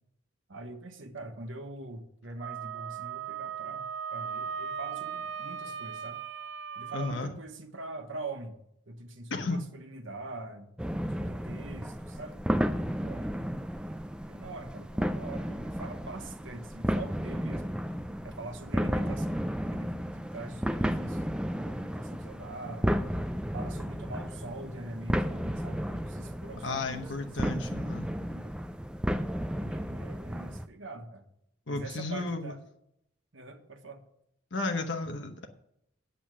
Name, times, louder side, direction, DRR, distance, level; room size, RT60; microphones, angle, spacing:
voice 1, 0.5-6.2 6.7-8.6 8.9-10.7 11.1-12.5 12.8-13.5 14.3-17.7 18.2-19.4 19.7-23.0 23.5-28.6 29.5-31.3 31.7-32.6 33.3-34.0, right 2 dB, 80° right, 5 dB, 1.3 m, -44 dB
Wind instrument woodwind instrument, 2.4-7.2, right 7 dB, 65° right, 0.6 m, -38 dB
voice 2, 6.9-7.3 9.3-9.6 26.6-28.1 31.7-32.5 34.5-35.5, left 3 dB, 70° left, 5 dB, 1.0 m, -33 dB
sound 1, 10.8-30.7, equal, 5° right, 0.4 m, -33 dB
8.6 x 8.0 x 6.2 m, 0.77 s
head